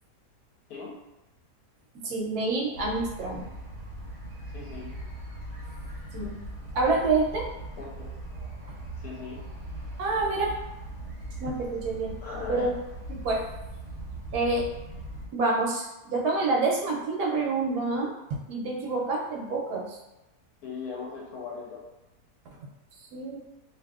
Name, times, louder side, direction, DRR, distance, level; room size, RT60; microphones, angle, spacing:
voice 1, 2.0-3.5 6.1-6.3 6.7-7.5 10.0-10.6 11.4-12.1 12.5-12.7 13.1-13.4 14.3-14.7 15.3-18.1 18.5-20.0 23.1-23.4, right 3 dB, 75° right, -2 dB, 1.0 m, -27 dB
sound 1, 2.7-15.3, right 1 dB, 60° right, 0.7 m, -40 dB
voice 2, 4.5-4.9 7.8-8.1 9.0-9.4 12.2-12.7 20.6-21.8, left 5 dB, 75° left, -3 dB, 1.1 m, -38 dB
2.7 x 2.6 x 2.3 m, 0.97 s
omnidirectional pair, 1.7 m